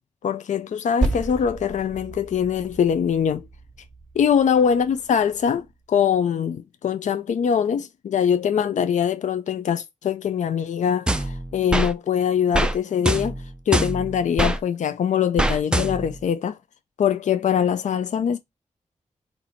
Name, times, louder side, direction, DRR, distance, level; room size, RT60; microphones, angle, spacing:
voice 1, 0.2-3.5 4.1-13.4 13.7-16.6 17.0-18.4, left 8 dB, 70° left, 0.4 m, -23 dB
Percussion, 1.0-5.8, right 2 dB, 10° left, 2.5 m, -32 dB
sound 1, 11.1-11.9 12.5-12.7 13.0-14.6 15.4-16.2, right 1 dB, 5° right, 0.5 m, -23 dB
4.1 x 2.7 x 4.3 m
wide cardioid pair, 100°, 13 cm